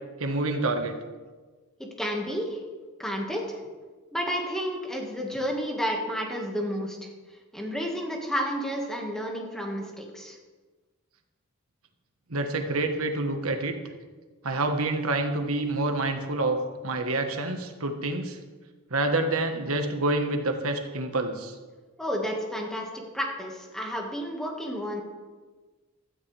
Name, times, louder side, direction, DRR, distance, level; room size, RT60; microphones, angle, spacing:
voice 1, 0.2-1.0 12.3-13.8 14.4-16.6 16.8-18.4 18.9-21.5, right 2 dB, 90° right, 5 dB, 1.4 m, -27 dB
voice 2, 1.8-2.6 3.0-3.6 4.1-7.1 7.5-10.4 22.0-25.0, equal, ahead, 0 dB, 1.8 m, -31 dB
16.5 x 13.0 x 3.4 m, 1.4 s
head